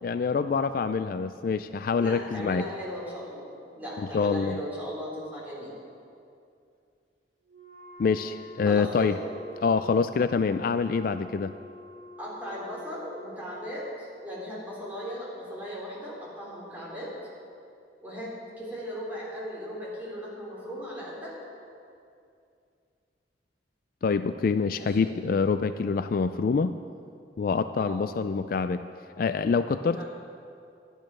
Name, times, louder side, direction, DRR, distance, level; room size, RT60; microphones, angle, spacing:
voice 1, 0.0-2.6 4.1-4.6 8.0-9.2 9.6-11.5 24.0-26.7 27.4-28.8 29.2-30.0, left 5 dB, 50° left, 11 dB, 0.3 m, -26 dB
voice 2, 2.0-3.5 3.7-5.7 8.6-9.2 12.2-17.1 18.0-21.4 24.7-25.1 27.8-28.0 29.8-30.0, equal, 10° right, -7 dB, 3.8 m, -37 dB
Wind instrument woodwind instrument, 7.5-13.6, left 2 dB, 50° right, 3.4 m, -48 dB
12.5 x 11.0 x 6.2 m, 2.5 s
head